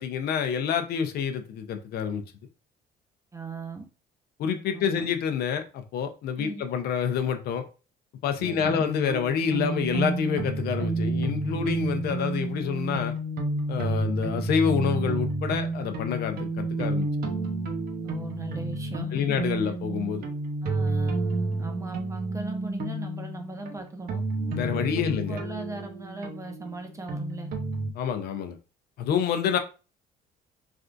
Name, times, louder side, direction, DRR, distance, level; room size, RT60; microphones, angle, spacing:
voice 1, 0.0-2.2 4.4-7.6 8.2-13.1 13.7-17.1 19.1-20.2 24.5-25.4 28.0-28.6 29.0-29.6, left 7 dB, 65° left, 0.5 m, -27 dB
voice 2, 3.3-3.9 4.7-5.1 6.4-6.6 8.5-8.8 18.0-19.7 20.6-24.2 25.0-27.5, right 3 dB, 20° right, 0.6 m, -38 dB
sound 1, 8.4-27.9, right 2 dB, 60° right, 0.7 m, -30 dB
3.4 x 2.4 x 2.4 m
cardioid pair, 110°, 17 cm